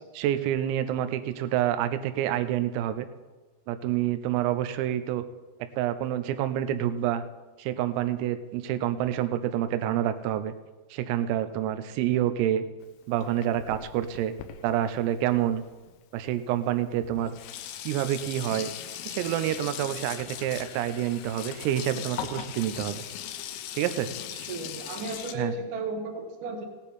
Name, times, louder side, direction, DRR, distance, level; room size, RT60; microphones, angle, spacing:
voice 1, 0.1-3.1 3.7-5.2 5.8-7.2 7.6-10.5 10.9-12.6 13.1-14.3 14.6-15.6 16.1-17.4 17.8-18.7 19.1-23.0 23.7-24.1 25.3-25.5, right 11 dB, 90° right, 11 dB, 3.4 m, -28 dB
Sink (filling or washing), 12.8-16.0 16.7-16.8 17.0-25.4, left 10 dB, 80° left, 3.1 m, -39 dB
voice 2, 24.3-26.6, right 2 dB, 70° right, 1 dB, 2.0 m, -34 dB
16.5 x 10.0 x 4.2 m, 1.2 s
omnidirectional pair, 5.9 m